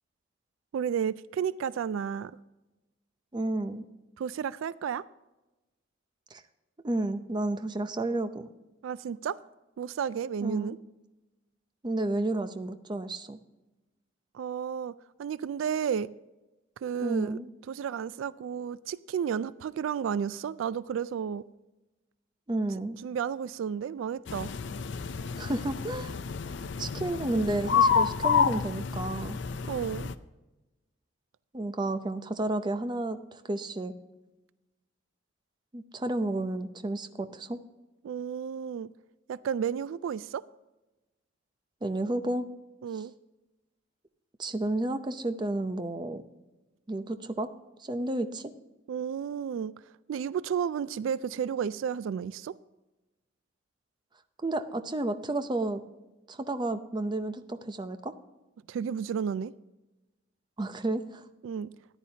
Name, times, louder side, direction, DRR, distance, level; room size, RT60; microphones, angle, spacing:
voice 1, 0.7-2.3 4.2-5.0 8.8-9.4 9.8-10.8 14.3-14.9 15.2-16.1 16.8-17.4 17.7-21.4 23.0-24.5 29.6-30.1 38.0-38.9 39.3-40.4 42.8-43.1 48.9-49.7 50.1-52.5 58.7-59.5 61.4-61.7, right 7 dB, 80° right, 18 dB, 0.3 m, -32 dB
voice 2, 3.3-3.8 6.3-6.4 6.8-8.5 10.4-10.8 11.8-13.4 17.0-17.5 22.5-23.0 25.4-26.1 26.8-29.4 31.5-33.9 35.7-37.6 41.8-42.5 44.4-46.2 46.9-47.5 47.8-48.5 54.4-55.8 56.3-58.1 60.6-61.2, right 2 dB, 20° right, 9 dB, 0.6 m, -31 dB
sound 1, 24.3-30.1, left 6 dB, 60° left, 0.5 m, -29 dB
14.0 x 9.9 x 2.8 m, 1.1 s
head